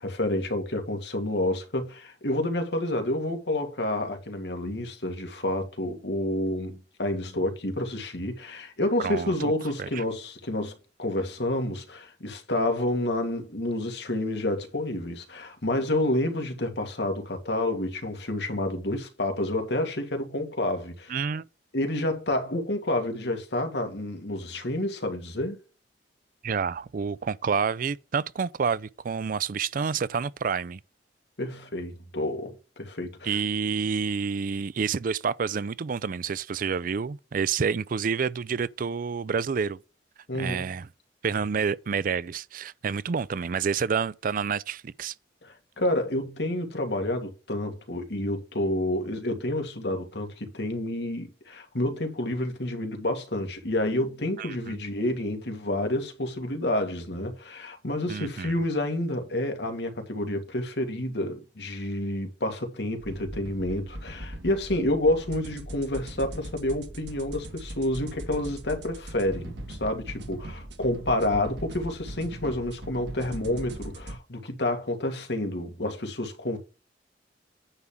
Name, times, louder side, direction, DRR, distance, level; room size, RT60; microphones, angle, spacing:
voice 1, 0.0-10.7 11.0-21.2 21.7-25.6 31.4-33.4 40.3-40.8 45.4-76.6, left 1 dB, 70° left, 1.9 m, -29 dB
voice 2, 9.0-9.5 9.8-10.0 21.1-21.4 26.4-30.8 33.2-39.8 40.4-40.9 41.2-45.1 54.4-54.8 58.1-58.5, right 6 dB, 50° right, 0.4 m, -28 dB
sound 1, 63.0-74.2, right 1 dB, 85° right, 1.8 m, -40 dB
9.8 x 3.6 x 7.1 m
head